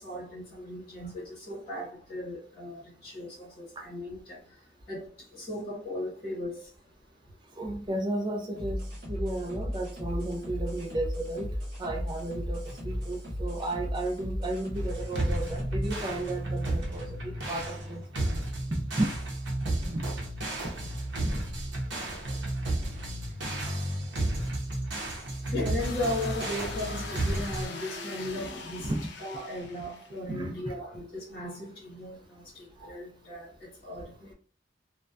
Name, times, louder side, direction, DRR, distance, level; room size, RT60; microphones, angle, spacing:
voice 1, 0.0-4.4 4.9-6.6 25.5-28.9 29.2-32.2 32.5-34.3, left 1 dB, 35° left, 0.9 m, -37 dB
voice 2, 7.5-8.8 9.1-18.2 18.7-19.1 19.6-20.0 28.8-29.1 30.3-30.7 32.8-33.0, right 1 dB, 25° right, 0.3 m, -34 dB
sound 1, 8.6-16.1, equal, 50° right, 1.3 m, -35 dB
sound 2, 14.7-27.7, right 1 dB, 75° right, 0.7 m, -32 dB
sound 3, 25.8-30.2, left 3 dB, 70° left, 0.5 m, -41 dB
2.6 x 2.1 x 2.3 m
head